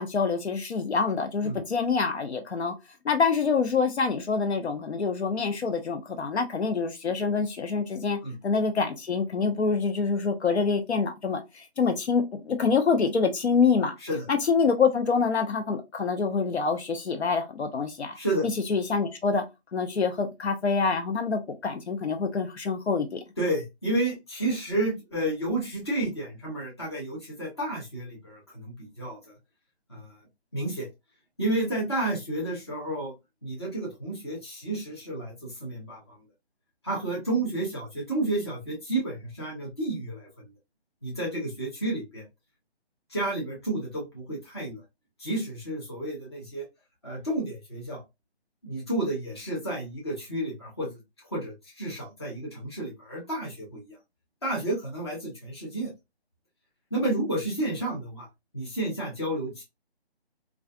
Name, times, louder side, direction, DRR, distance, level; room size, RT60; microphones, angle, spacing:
voice 1, 0.0-2.7 3.0-8.2 8.4-14.0 14.3-18.2 18.4-19.4 19.7-23.2, left 5 dB, 80° left, 0.8 m, -26 dB
voice 2, 18.1-18.5 23.4-29.3 29.9-30.1 30.5-30.9 31.4-33.1 33.4-36.2 36.8-40.3 41.0-42.3 43.1-44.8 45.2-46.6 47.0-48.0 48.6-51.0 51.3-54.0 54.4-55.9 56.9-58.3 58.5-59.6, right 1 dB, 25° left, 0.7 m, -31 dB
2.4 x 2.3 x 2.3 m
hypercardioid pair, 170°, 32 cm